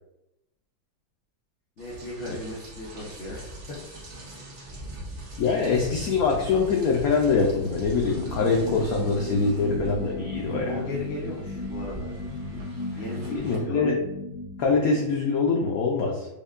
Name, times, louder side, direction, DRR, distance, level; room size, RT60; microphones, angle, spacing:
voice 1, 1.8-3.8 10.6-12.1 12.9-13.9, left 2 dB, 50° left, -8 dB, 0.8 m, -36 dB
Rain, 1.8-13.6, equal, 55° right, 1.3 m, -41 dB
voice 2, 5.4-10.7 13.3-13.9 14.6-16.3, left 4 dB, 90° left, -1 dB, 0.7 m, -24 dB
sound 1, 8.2-15.3, left 2 dB, 70° left, 1.3 m, -36 dB
5.3 x 2.2 x 2.4 m, 0.87 s
omnidirectional pair, 2.1 m